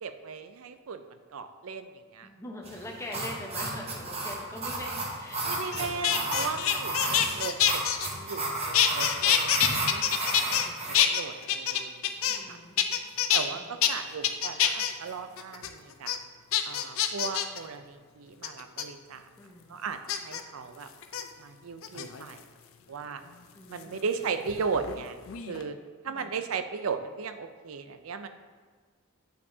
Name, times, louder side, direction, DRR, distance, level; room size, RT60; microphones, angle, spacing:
voice 1, 0.0-2.3 5.4-7.8 8.1-10.5 10.9-12.6 13.3-16.1 16.6-19.3 19.7-20.9 21.4-22.4 22.9-23.2 23.7-25.2 25.5-25.8 26.0-28.3, right 5 dB, 85° right, 9 dB, 0.5 m, -37 dB
voice 2, 2.2-6.3 7.0-7.4 10.5-11.0 12.2-12.9 13.5-13.8 19.4-19.8 23.5-24.1 26.1-26.3, left 1 dB, 15° left, -1 dB, 0.8 m, -43 dB
sound 1, 2.6-11.0, right 2 dB, 30° right, 1.0 m, -33 dB
sound 2, 5.7-8.5 8.7-10.7 10.9-12.5 12.8-13.4 13.8-13.9 14.2-14.9 15.4-15.7 16.1-16.2 16.5-17.6 18.4-18.8 20.1-20.4 21.0-21.2 21.8-22.4 23.8-25.0 25.3-25.6, left 10 dB, 80° left, 0.5 m, -26 dB
8.9 x 5.4 x 2.7 m, 1.5 s
head